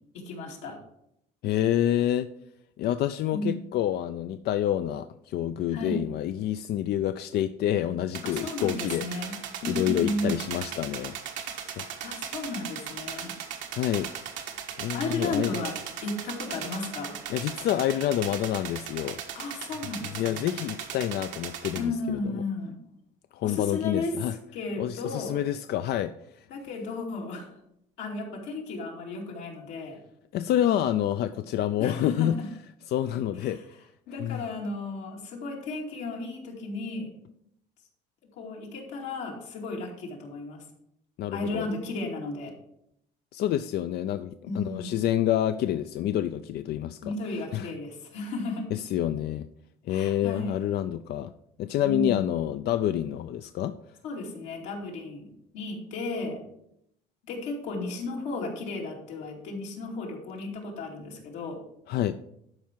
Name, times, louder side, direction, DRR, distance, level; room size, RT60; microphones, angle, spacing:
voice 1, 0.1-0.8 3.3-3.7 5.7-6.0 8.2-9.3 9.6-10.4 12.0-13.3 14.9-15.8 16.0-17.1 19.3-20.5 21.7-22.8 23.4-25.4 26.5-27.5 28.0-30.0 31.8-32.5 33.4-33.6 34.1-37.1 38.3-40.6 41.3-42.6 44.5-45.0 47.0-48.7 49.9-50.6 51.8-52.3 54.0-55.3 55.5-56.4 57.2-61.6, left 2 dB, 85° left, -1 dB, 2.5 m, -34 dB
voice 2, 1.4-2.3 2.8-11.2 11.8-11.9 13.7-14.1 14.8-15.5 17.3-19.2 20.2-22.4 23.3-24.3 24.8-26.5 30.3-32.4 32.9-33.6 34.2-34.4 41.2-41.7 43.3-47.0 47.5-47.7 48.7-49.5 49.9-51.3 51.6-53.7 61.9-62.2, left 11 dB, 60° left, 10 dB, 0.4 m, -28 dB
sound 1, 8.1-21.8, right 8 dB, 85° right, 1.4 m, -38 dB
12.0 x 4.6 x 4.6 m, 0.77 s
cardioid pair, 110°, 19 cm